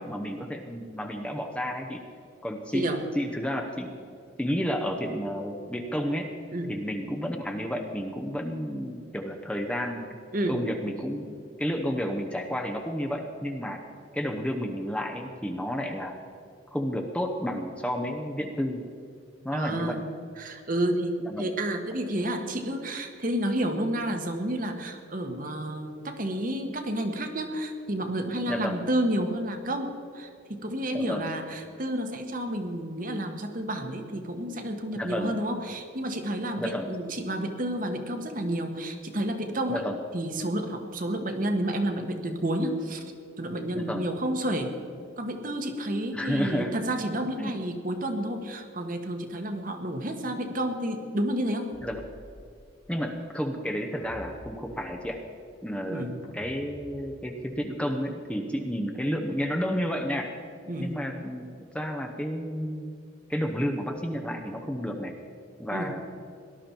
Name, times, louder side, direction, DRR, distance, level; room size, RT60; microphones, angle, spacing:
voice 1, 0.0-2.0 2.4-2.9 3.1-3.9 4.4-6.3 6.7-10.1 10.5-13.8 14.1-16.2 16.7-18.8 19.4-20.0 21.2-21.4 28.5-28.8 30.9-31.3 35.0-35.4 36.6-36.9 39.7-40.0 43.7-44.0 46.1-46.7 47.4-47.5 51.8-52.0 52.9-55.2 55.6-56.1 56.3-60.3 60.8-62.9 63.3-65.1 65.6-66.0, equal, 5° left, 2 dB, 0.8 m, -31 dB
voice 2, 2.7-3.0 6.5-6.8 10.3-10.6 19.5-20.0 20.4-39.8 40.1-43.0 43.4-44.7 45.2-51.7 55.9-56.2 60.7-60.9 65.7-65.9, right 1 dB, 40° right, 5 dB, 1.3 m, -30 dB
sound 1, 51.7-52.8 54.0-55.2 56.2-57.5, equal, 85° left, 3.3 m, -49 dB
18.0 x 12.0 x 4.5 m, 2.5 s
head